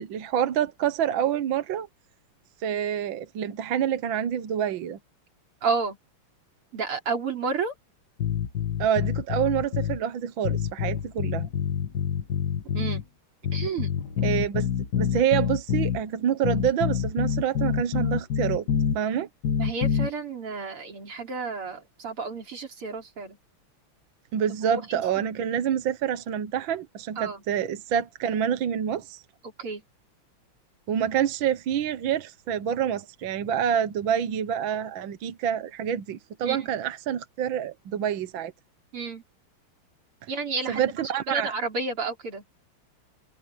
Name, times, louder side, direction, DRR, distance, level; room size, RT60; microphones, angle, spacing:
voice 1, 0.0-1.9 2.6-5.0 8.8-11.5 14.2-14.7 15.0-18.7 19.0-19.3 24.3-29.2 30.9-38.5 40.2-40.3 40.7-41.5, right 9 dB, 65° right, 1.7 m, -27 dB
voice 2, 5.6-6.0 6.7-7.7 12.7-13.0 13.5-13.9 19.6-23.4 24.6-25.2 27.2-27.4 29.6-29.8 36.4-36.7 38.9-39.2 40.3-40.8 41.3-42.4, right 4 dB, 85° right, 4.4 m, -31 dB
sound 1, 8.2-10.0 10.4-13.0 13.4-16.0 16.4-19.0 19.4-20.1, left 8 dB, 50° left, 2.3 m, -27 dB
omnidirectional pair, 2.4 m